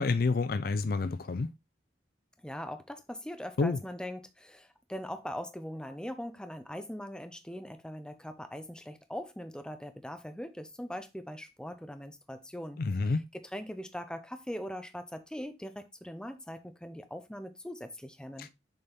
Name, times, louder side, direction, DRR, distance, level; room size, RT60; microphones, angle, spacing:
voice 1, 0.0-1.5 3.6-3.8 12.8-13.2 18.4-18.5, left 3 dB, 55° left, 0.4 m, -28 dB
voice 2, 2.4-18.5, equal, 5° left, 0.7 m, -41 dB
7.0 x 4.2 x 3.5 m
head